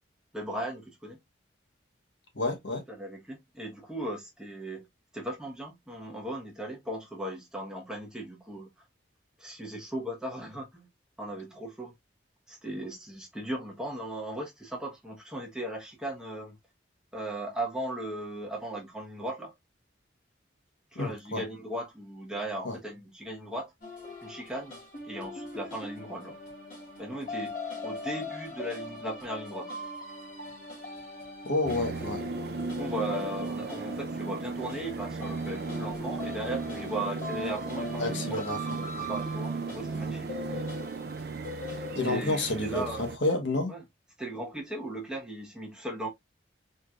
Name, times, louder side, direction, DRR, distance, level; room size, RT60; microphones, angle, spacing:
voice 1, 0.3-1.2 2.9-4.9 5.1-8.7 9.4-10.9 11.2-11.9 12.5-16.6 17.1-19.5 20.9-23.7 24.2-24.8 25.0-26.4 27.0-27.5 27.8-29.7 32.7-38.2 38.8-40.3 42.0-43.1 43.7-43.8 44.2-46.1, right 1 dB, 5° right, 1.1 m, -37 dB
voice 2, 2.3-2.8 20.9-21.4 22.6-22.7 31.4-32.2 38.0-38.6 38.9-39.1 41.9-42.8 43.2-43.7, left 2 dB, 75° left, 1.2 m, -29 dB
sound 1, 23.8-42.6, left 2 dB, 50° left, 2.5 m, -41 dB
sound 2, 31.6-43.2, right 4 dB, 55° right, 0.4 m, -36 dB
4.4 x 3.1 x 2.5 m
head